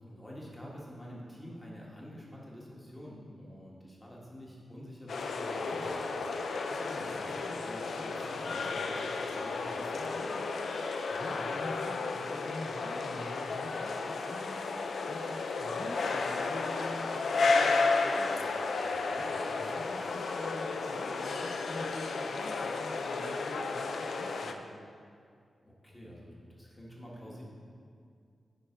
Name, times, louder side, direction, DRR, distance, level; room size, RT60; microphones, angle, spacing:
voice 1, 0.1-6.0 6.7-10.4 18.9-19.2 25.6-27.4, equal, 15° left, -4 dB, 1.6 m, -47 dB
sound 1, 5.1-24.5, left 3 dB, 70° left, 0.5 m, -33 dB
voice 2, 11.1-19.2 19.6-24.9, left 1 dB, 50° left, -2 dB, 0.9 m, -46 dB
11.0 x 4.9 x 4.5 m, 2.2 s
wide cardioid pair, 150°, 0 cm